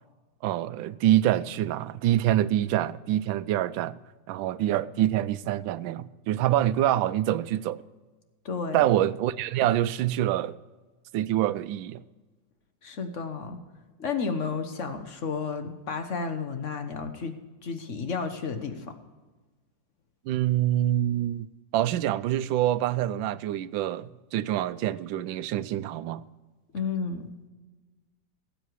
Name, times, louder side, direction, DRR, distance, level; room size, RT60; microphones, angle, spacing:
voice 1, 0.4-4.0 4.3-7.8 8.7-10.6 11.1-12.0 20.3-21.5 21.7-26.2, right 13 dB, 90° right, 1.3 m, -26 dB
voice 2, 8.4-8.8 12.8-13.6 14.0-17.4 17.6-18.9 26.7-27.5, left 5 dB, 45° left, 1.3 m, -32 dB
18.0 x 8.0 x 4.7 m
omnidirectional pair, 2.0 m